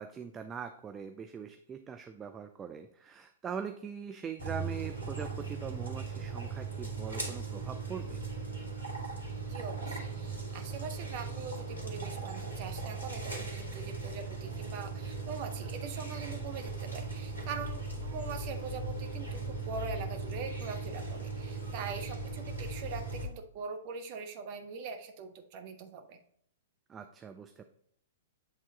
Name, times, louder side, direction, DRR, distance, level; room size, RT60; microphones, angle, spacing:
voice 1, 0.0-8.2 26.9-27.6, right 6 dB, 20° right, 7 dB, 0.5 m, -42 dB
sound 1, 4.4-23.3, right 4 dB, 85° right, 1.8 m, -38 dB
voice 2, 9.5-26.2, right 5 dB, 40° right, 6 dB, 0.9 m, -42 dB
8.5 x 3.6 x 3.9 m, 0.66 s
figure-of-eight pair, 105°, 0 cm